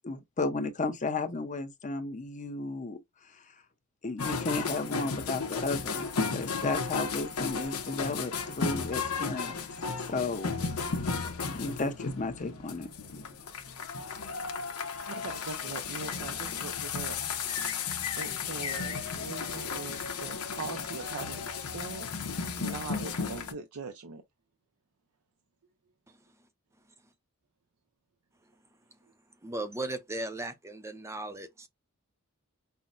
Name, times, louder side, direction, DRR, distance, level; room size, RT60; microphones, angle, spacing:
voice 1, 0.0-3.0 3.3-3.4 4.0-9.6 10.0-10.5 10.8-11.2 11.5-13.3, left 3 dB, 35° left, 0.7 m, -34 dB
sound 1, 4.2-23.5, left 5 dB, 90° left, 0.8 m, -34 dB
voice 2, 14.6-17.2 17.6-24.2, right 4 dB, 70° right, 0.5 m, -42 dB
voice 3, 29.4-31.7, right 2 dB, 10° right, 0.5 m, -37 dB
5.6 x 2.1 x 2.5 m
head